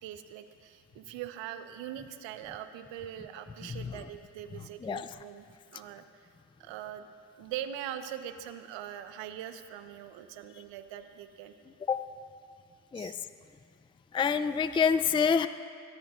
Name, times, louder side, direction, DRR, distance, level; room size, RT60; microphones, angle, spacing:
voice 1, 0.0-5.4 5.7-6.0 6.6-7.1 7.4-11.5 12.9-13.2, right 10 dB, 70° right, 9 dB, 1.2 m, -42 dB
voice 2, 3.7-4.0 4.8-5.1 11.9-12.0 12.9-13.1 14.1-15.5, left 6 dB, 10° left, 12 dB, 0.4 m, -27 dB
23.0 x 18.0 x 2.5 m, 2.3 s
hypercardioid pair, 70°, 46 cm